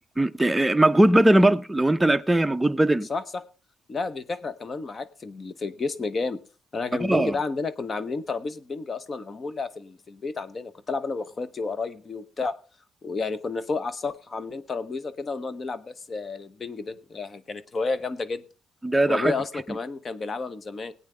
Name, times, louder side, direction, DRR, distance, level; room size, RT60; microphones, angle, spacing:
voice 1, 0.2-3.1 7.0-7.3 18.8-19.3, right 1 dB, 10° right, 0.6 m, -20 dB
voice 2, 3.9-6.4 6.7-12.5 13.0-18.4 19.1-20.9, left 4 dB, 40° left, 0.9 m, -31 dB
20.5 x 8.9 x 3.3 m
cardioid pair, 90°, 0 cm